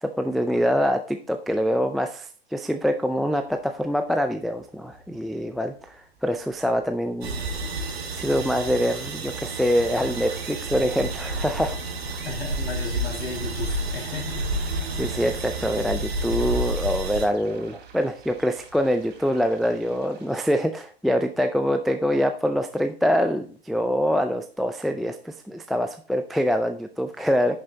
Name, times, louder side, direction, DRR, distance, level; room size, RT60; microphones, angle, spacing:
voice 1, 0.0-7.4 8.1-11.8 14.9-27.6, equal, ahead, 5 dB, 0.3 m, -25 dB
Bus, 3.1-20.0, right 6 dB, 60° right, 1.8 m, -45 dB
sound 1, 7.2-17.2, right 2 dB, 80° right, 2.1 m, -30 dB
sound 2, 9.7-20.5, right 6 dB, 35° right, 3.0 m, -50 dB
voice 2, 12.2-14.5, left 5 dB, 70° left, 1 dB, 4.7 m, -34 dB
11.0 x 5.4 x 3.9 m, 0.43 s
hypercardioid pair, 105°, 31 cm